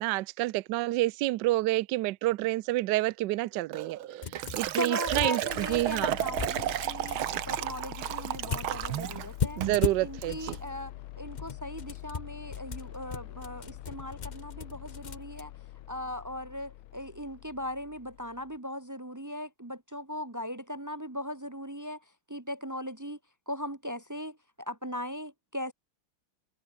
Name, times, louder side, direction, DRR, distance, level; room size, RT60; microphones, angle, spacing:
voice 1, 0.0-4.0 4.6-6.2 9.6-10.5, right 17 dB, 75° right, 1.1 m, -28 dB
Liquid, 3.7-9.3 9.6-9.9 10.2-10.6, right 12 dB, 90° right, 1.8 m, -33 dB
sound 1, 4.2-4.7 5.0-7.2 8.5-10.7 11.2-15.4, left 5 dB, 45° left, 0.6 m, -36 dB
voice 2, 4.7-7.2 7.5-9.6 10.0-15.5 15.9-22.0 22.3-23.2 23.5-25.7, left 1 dB, 20° right, 0.5 m, -38 dB
sound 2, 5.5-18.6, left 15 dB, 85° left, 1.6 m, -45 dB
open air
omnidirectional pair, 2.2 m